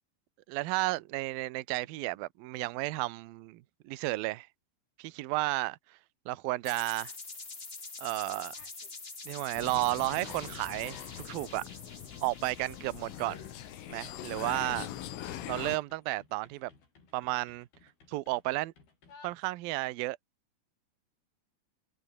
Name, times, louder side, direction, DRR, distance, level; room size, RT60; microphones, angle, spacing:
voice 1, 0.5-4.5 5.0-5.8 6.3-7.1 8.0-8.6 9.3-11.0 11.3-11.6 12.2-13.5 13.9-14.9 15.5-16.7 17.1-17.7 18.1-18.7 19.2-20.2, right 20 dB, 75° right, 2.2 m, -33 dB
sound 1, 6.6-14.4, left 3 dB, 65° left, 0.6 m, -46 dB
sound 2, 8.4-8.9 9.3-19.9, left 4 dB, 50° left, 8.6 m, -62 dB
sound 3, 9.6-15.8, left 12 dB, 85° left, 4.6 m, -43 dB
omnidirectional pair, 5.6 m